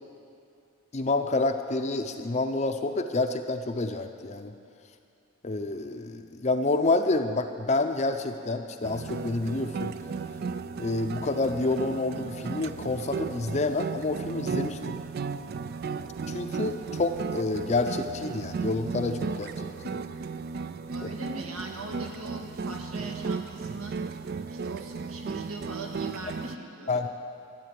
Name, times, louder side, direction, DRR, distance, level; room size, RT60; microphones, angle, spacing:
voice 1, 0.9-4.5 5.4-9.9 10.8-14.8 16.3-19.9 26.9-27.1, left 2 dB, 30° left, 6 dB, 0.5 m, -28 dB
sound 1, 8.8-26.6, right 5 dB, 45° right, 0.3 m, -35 dB
voice 2, 20.9-24.0 24.5-27.1, right 2 dB, 90° right, 1 dB, 1.7 m, -40 dB
13.0 x 9.7 x 7.5 m, 2.5 s
head